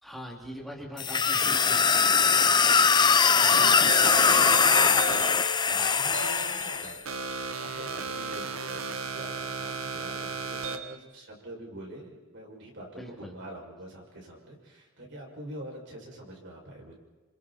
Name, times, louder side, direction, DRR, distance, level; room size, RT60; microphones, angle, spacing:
voice 1, 0.0-1.8 3.4-3.8 13.0-13.3, equal, ahead, -2 dB, 2.7 m, -41 dB
sound 1, 1.0-6.9, left 5 dB, 20° left, 0.6 m, -22 dB
voice 2, 2.1-5.0 5.6-7.0 7.6-17.0, right 1 dB, 60° right, -1 dB, 6.5 m, -45 dB
sound 2, 3.8-11.0, right 4 dB, 80° right, 1.5 m, -35 dB
29.0 x 27.0 x 4.3 m, 1.3 s
head